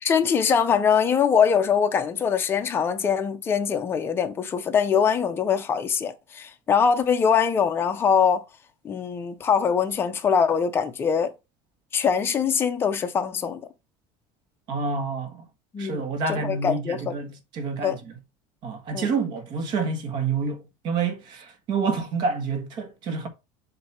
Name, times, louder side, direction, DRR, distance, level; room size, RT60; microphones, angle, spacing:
voice 1, 0.0-8.4 8.8-11.3 11.9-13.6 15.7-16.0 16.3-17.1 17.8-18.0 18.9-19.1, left 7 dB, 20° left, 0.7 m, -23 dB
voice 2, 14.7-15.4 15.8-18.1 18.6-23.3, right 4 dB, 40° right, 1.4 m, -28 dB
7.6 x 2.9 x 5.7 m
cardioid pair, 170°, 11 cm